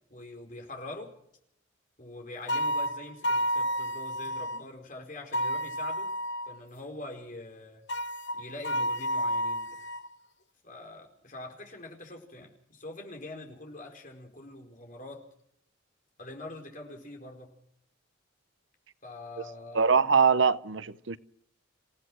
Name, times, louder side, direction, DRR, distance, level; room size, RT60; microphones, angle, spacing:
voice 1, 0.1-1.1 2.0-6.1 6.5-7.8 8.3-9.8 10.6-15.2 16.2-17.5 19.0-19.9, left 2 dB, 40° left, 4.8 m, -44 dB
sound 1, 2.5-4.6 5.3-6.6 7.9-10.1, equal, 55° left, 1.0 m, -31 dB
voice 2, 19.7-21.2, right 5 dB, 65° right, 0.8 m, -23 dB
27.5 x 16.5 x 6.3 m
head